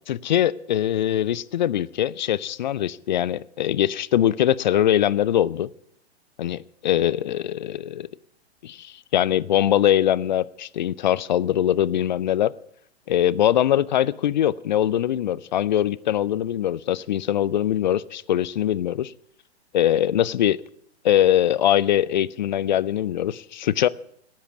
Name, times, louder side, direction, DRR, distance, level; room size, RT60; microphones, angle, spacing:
voice 1, 0.1-5.7 6.4-8.1 8.6-12.5 13.1-19.1 19.7-20.6 21.0-23.9, left 11 dB, 45° left, 21 dB, 0.5 m, -22 dB
13.0 x 10.5 x 8.2 m, 0.69 s
figure-of-eight pair, 110°, 33 cm